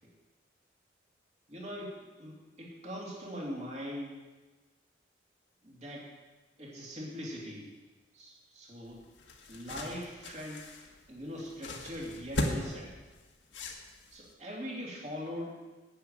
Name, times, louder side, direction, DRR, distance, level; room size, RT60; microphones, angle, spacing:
voice 1, 1.5-4.2 5.6-6.1 6.6-7.7 8.1-9.0 9.5-10.7 11.1-12.9 14.1-15.6, equal, 40° right, -3 dB, 3.0 m, -41 dB
sound 1, 8.9-14.3, left 1 dB, 80° left, 1.6 m, -39 dB
10.0 x 7.2 x 8.9 m, 1.2 s
head